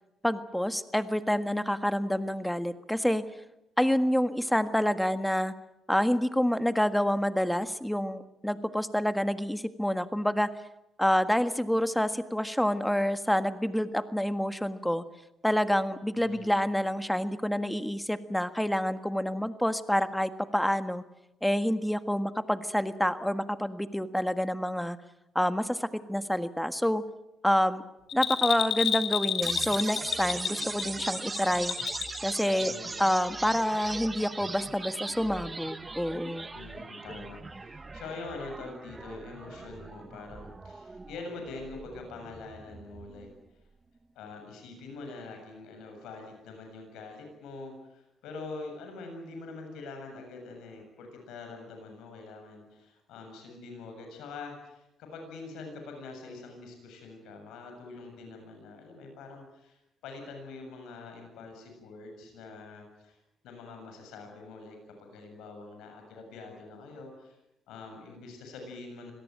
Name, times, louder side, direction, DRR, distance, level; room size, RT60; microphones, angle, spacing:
voice 1, 0.2-3.2 3.8-5.5 5.9-10.5 11.0-15.0 15.4-21.0 21.4-25.0 25.3-27.0 27.4-27.8 28.1-31.8 32.2-32.7 33.0-36.5, equal, 5° left, 10 dB, 1.6 m, -28 dB
voice 2, 16.2-16.6 32.6-33.0 36.5-43.3 44.2-63.2 63.4-67.4 67.7-69.1, left 3 dB, 90° left, 4 dB, 7.4 m, -44 dB
Bell, 28.1-32.2 32.5-32.6, left 8 dB, 70° left, 3.0 m, -30 dB
sound 1, 29.4-43.4, right 3 dB, 25° right, 1.3 m, -40 dB
25.5 x 18.0 x 9.1 m, 0.88 s
cardioid pair, 90°, 0 cm